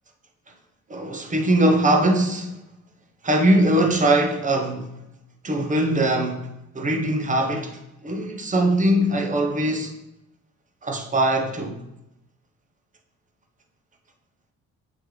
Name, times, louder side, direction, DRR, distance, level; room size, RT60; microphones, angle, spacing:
voice 1, 0.9-2.5 3.2-4.9 5.4-6.4 6.7-9.9 10.8-11.8, right 1 dB, 25° right, 0.9 m, -21 dB
7.9 x 3.2 x 4.9 m
cardioid pair, 90°, 30 cm